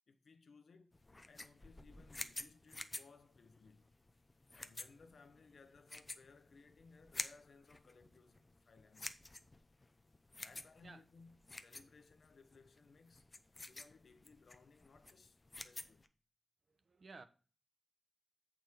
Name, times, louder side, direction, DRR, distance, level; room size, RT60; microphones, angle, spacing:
voice 1, 0.1-0.9 1.3-3.9 4.5-9.2 10.3-13.3 13.6-16.1, left 4 dB, 70° left, 1.0 m, -63 dB
sound 1, 0.9-16.1, left 2 dB, 25° left, 0.6 m, -50 dB
voice 2, 16.7-17.2, right 3 dB, 50° right, 0.9 m, -55 dB
8.5 x 5.1 x 4.5 m
wide cardioid pair, 125°, 0 cm